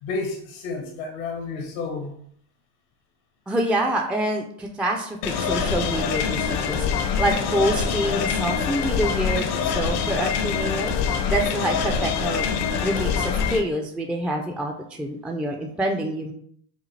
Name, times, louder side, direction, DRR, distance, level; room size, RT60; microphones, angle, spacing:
voice 1, 0.0-2.1, left 3 dB, 90° left, 3 dB, 1.1 m, -31 dB
voice 2, 3.5-9.5 9.7-11.0 11.3-12.5 12.8-14.7 15.0-16.3, right 1 dB, 5° right, 1 dB, 0.3 m, -26 dB
sound 1, 5.2-13.6, left 6 dB, 70° left, 0.6 m, -24 dB
5.0 x 2.3 x 3.2 m, 0.67 s
supercardioid pair, 105°, 40 cm